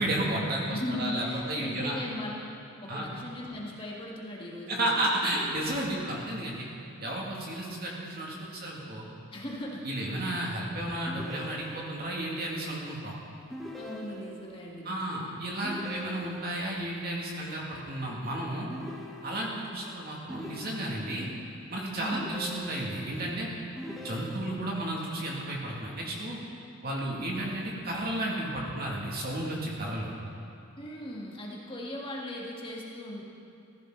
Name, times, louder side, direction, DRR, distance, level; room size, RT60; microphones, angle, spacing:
voice 1, 0.0-2.0 2.9-3.0 4.7-6.7 7.0-9.1 9.8-13.1 14.8-18.7 19.2-21.3 21.7-23.5 24.0-26.4 26.8-30.1, right 1 dB, 50° right, -3 dB, 2.4 m, -32 dB
voice 2, 0.7-2.4 2.8-4.9 9.3-10.0 13.7-15.3 21.9-22.3 23.8-24.1 30.8-33.2, left 1 dB, 25° left, -3 dB, 1.8 m, -38 dB
sound 1, 11.1-12.1 13.5-14.6 15.6-16.7 18.7-19.7 20.3-21.3 22.1-23.1 23.8-24.8, equal, ahead, 1.3 m, -43 dB
15.5 x 15.0 x 3.9 m, 2.6 s
head